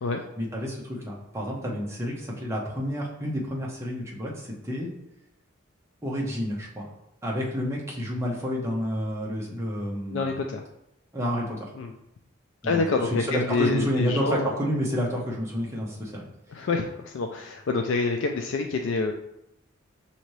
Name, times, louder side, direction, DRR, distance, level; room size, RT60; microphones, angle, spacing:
voice 1, 0.4-4.9 6.0-6.9 7.2-10.3 11.1-11.7 12.6-16.2, equal, 15° right, -3 dB, 0.8 m, -29 dB
voice 2, 10.1-10.6 11.8-11.9 12.6-14.5 16.5-19.1, left 4 dB, 65° left, 4 dB, 0.3 m, -27 dB
5.9 x 2.7 x 3.1 m, 0.83 s
head